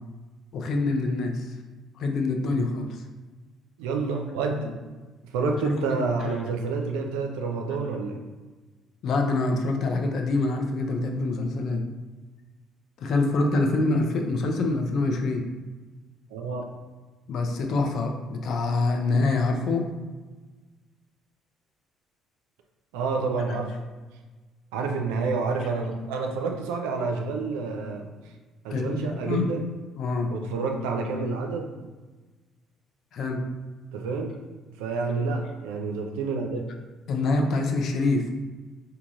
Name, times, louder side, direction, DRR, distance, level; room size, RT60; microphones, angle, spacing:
voice 1, 0.5-1.5 2.0-3.0 5.6-5.9 6.2-6.3 9.0-11.8 13.0-15.5 17.3-19.9 28.7-29.0 29.3-29.5 30.0-30.3 33.1-33.4 37.1-38.2, left 3 dB, 55° left, 3 dB, 0.5 m, -25 dB
voice 2, 3.8-4.8 5.3-8.2 16.3-16.6 22.9-23.8 24.7-28.2 28.6-29.7 30.3-31.7 33.9-34.4 34.8-36.7, right 4 dB, 70° right, 3 dB, 0.4 m, -29 dB
4.6 x 2.8 x 2.4 m, 1.3 s
figure-of-eight pair, 50°, 0 cm